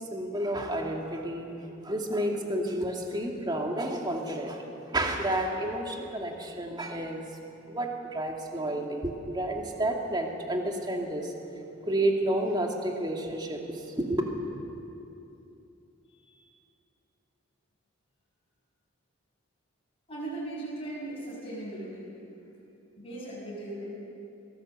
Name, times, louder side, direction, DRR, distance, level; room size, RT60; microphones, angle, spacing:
voice 1, 0.0-1.5 1.8-7.3 7.7-11.3 11.8-14.2, right 1 dB, 20° right, 1 dB, 2.3 m, -30 dB
voice 2, 16.1-16.4 20.1-22.1 23.0-23.9, right 2 dB, 25° left, -5 dB, 6.8 m, -38 dB
24.0 x 17.0 x 7.8 m, 2.8 s
head